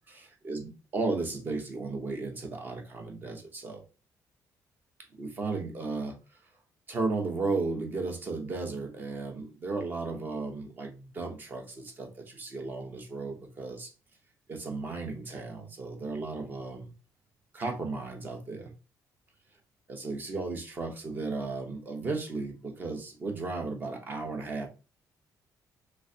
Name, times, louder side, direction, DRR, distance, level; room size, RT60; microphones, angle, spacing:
voice 1, 0.1-3.8 5.1-6.1 6.9-13.9 14.5-16.9 17.5-18.7 19.9-24.7, right 3 dB, 30° right, 3 dB, 0.8 m, -35 dB
3.3 x 3.1 x 2.7 m, 0.31 s
cardioid pair, 175°, 7 cm